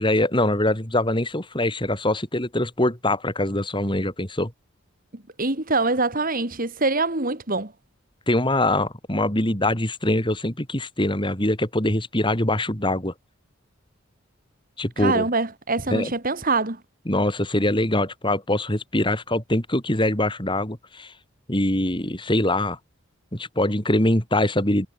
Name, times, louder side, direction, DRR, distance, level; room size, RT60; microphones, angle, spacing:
voice 1, 0.0-4.5 8.3-13.1 14.8-15.3 15.9-16.1 17.1-21.1 21.5-22.8 23.3-24.9, left 1 dB, 25° left, 4.3 m, -23 dB
voice 2, 5.1-7.7 15.0-16.8, right 3 dB, 45° right, 2.9 m, -24 dB
head